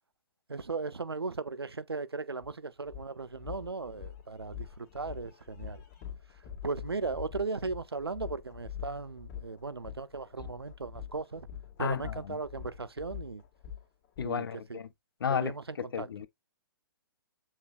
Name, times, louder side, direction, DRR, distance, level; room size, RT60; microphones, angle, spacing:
voice 1, 0.5-5.8 6.6-11.5 11.8-13.4 14.2-14.8 15.3-16.1, right 4 dB, 90° right, 0.5 m, -37 dB
sound 1, 2.4-2.5 2.9-14.3, left 9 dB, 35° left, 1.7 m, -44 dB
voice 2, 11.8-12.4 14.2-14.9 15.2-15.5 15.8-16.3, left 7 dB, 65° left, 0.6 m, -33 dB
7.1 x 3.1 x 2.4 m
figure-of-eight pair, 120°, 13 cm